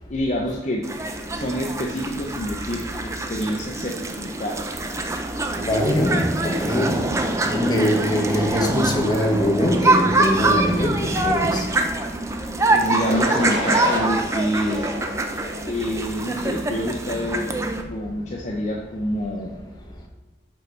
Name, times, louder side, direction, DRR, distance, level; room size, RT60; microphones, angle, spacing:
voice 1, 0.1-0.8 1.3-4.0 4.2-4.7 12.7-14.9 15.7-17.5 17.9-19.6, equal, 40° left, -1 dB, 0.6 m, -27 dB
sound 1, 0.8-17.8, right 2 dB, 15° right, 0.4 m, -25 dB
voice 2, 5.6-7.0 7.3-11.6, equal, 20° left, 0 dB, 1.0 m, -22 dB
sound 2, 13.0-14.1 14.6-15.7 16.2-16.6, equal, 75° right, 1.5 m, -28 dB
5.4 x 4.6 x 5.3 m, 1.1 s
head